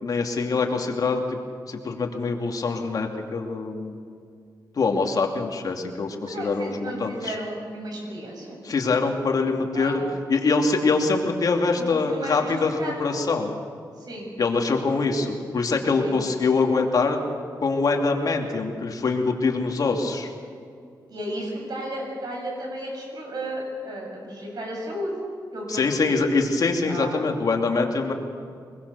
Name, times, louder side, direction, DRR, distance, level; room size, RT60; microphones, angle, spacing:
voice 1, 0.0-1.4 1.7-3.9 4.7-7.3 8.6-10.0 10.3-13.5 14.4-17.2 17.6-20.3 25.7-28.1, left 4 dB, 55° left, 2 dB, 2.7 m, -24 dB
voice 2, 6.2-8.6 9.7-10.0 11.7-12.5 12.8-13.2 14.0-14.3 16.0-16.2 21.1-25.1 25.5-26.2 26.8-27.2 27.7-27.9, right 1 dB, 60° right, 0 dB, 7.9 m, -34 dB
24.5 x 21.5 x 7.0 m, 2.3 s
wide cardioid pair, 115°, 8 cm